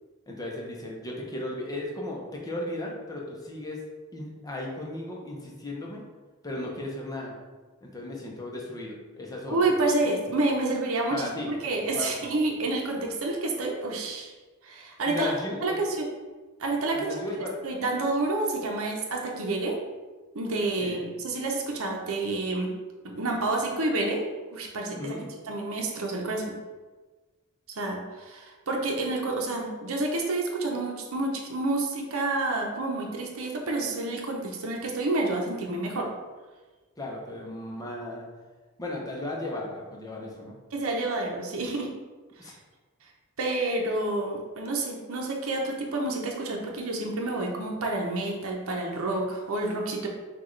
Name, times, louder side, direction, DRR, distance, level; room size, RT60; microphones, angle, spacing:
voice 1, 0.3-3.8 4.1-6.0 6.4-7.4 7.8-9.7 11.1-11.5 11.9-12.3 15.1-15.8 16.9-17.7 20.8-21.0 24.9-25.3 37.0-38.3 38.8-40.6 42.4-42.5, left 1 dB, 15° left, -2 dB, 0.7 m, -36 dB
voice 2, 9.5-14.3 14.6-15.3 15.6-16.1 16.6-17.1 17.6-19.8 20.3-22.7 23.0-24.2 24.5-25.1 25.5-26.5 27.7-36.1 40.7-41.9 43.4-50.1, right 2 dB, 70° right, 0 dB, 0.8 m, -29 dB
5.9 x 2.4 x 3.2 m, 1.3 s
head